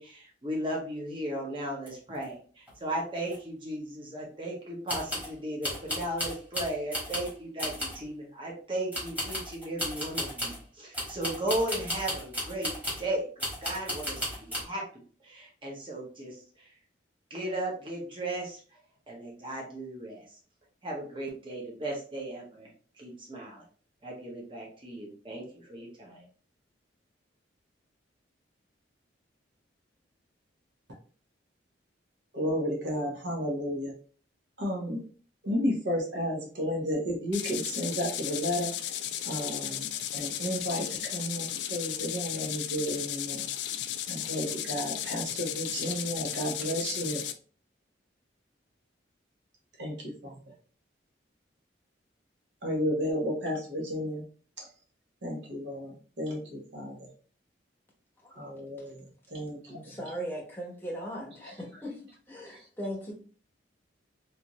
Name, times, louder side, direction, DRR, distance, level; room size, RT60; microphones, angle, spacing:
voice 1, 0.0-14.9 15.2-16.4 17.3-18.6 19.1-20.2 20.8-22.7 23.0-23.6 24.0-26.3, right 1 dB, 25° right, -2 dB, 0.9 m, -36 dB
sound 1, 1.9-2.0 2.1-2.2 2.7-2.8 3.3-3.4 4.9-5.3 5.6-7.3 7.6-8.0 8.9-10.6 10.9-13.1 13.4-14.6, left 1 dB, 10° right, 1.3 m, -34 dB
voice 2, 32.3-33.9 34.6-35.0 35.4-38.7 39.2-39.9 40.1-40.9 41.1-43.5 44.1-47.2 49.8-50.3 52.6-54.2 54.6-54.7 55.2-57.0 58.4-59.0 59.3-59.9, equal, 70° right, 0 dB, 1.0 m, -32 dB
sound 2, 37.3-47.3, left 11 dB, 65° left, 0.3 m, -35 dB
voice 3, 59.7-62.0 62.3-63.1, equal, 10° left, -2 dB, 0.9 m, -38 dB
3.3 x 2.6 x 3.0 m, 0.42 s
head